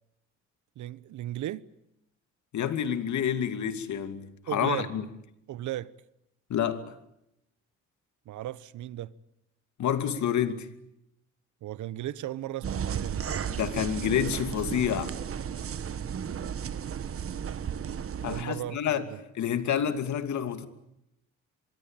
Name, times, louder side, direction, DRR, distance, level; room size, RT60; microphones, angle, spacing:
voice 1, 0.8-1.6 4.5-4.9 5.5-5.9 8.3-9.1 11.6-13.2 18.3-19.2, right 13 dB, 75° right, 1.1 m, -36 dB
voice 2, 2.5-4.3 4.5-5.0 6.5-6.9 9.8-10.7 13.6-15.1 18.2-19.1 19.4-20.7, left 9 dB, 70° left, 2.6 m, -28 dB
sound 1, 12.6-18.4, right 8 dB, 50° right, 1.5 m, -34 dB
25.5 x 23.0 x 9.0 m
cardioid pair, 90°, 30 cm